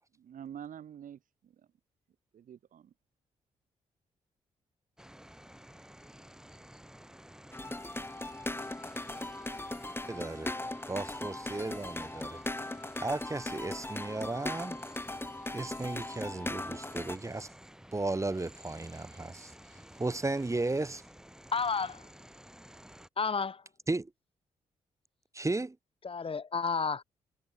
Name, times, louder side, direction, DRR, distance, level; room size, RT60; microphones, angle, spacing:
voice 1, 0.1-1.7 2.3-2.9, right 9 dB, 65° right, 1.5 m, -47 dB
sound 1, 5.0-23.1, equal, 5° right, 5.2 m, -53 dB
sound 2, 7.5-17.2, left 2 dB, 15° left, 2.1 m, -39 dB
voice 2, 10.1-10.5 10.9-12.4 13.0-14.8 15.5-17.5 17.9-19.5 19.9-21.0 23.9-24.1 25.3-25.8, right 2 dB, 20° right, 1.3 m, -34 dB
voice 3, 21.5-22.0 23.2-23.6 26.0-27.0, left 5 dB, 40° left, 1.0 m, -31 dB
hypercardioid pair, 45°, 15 cm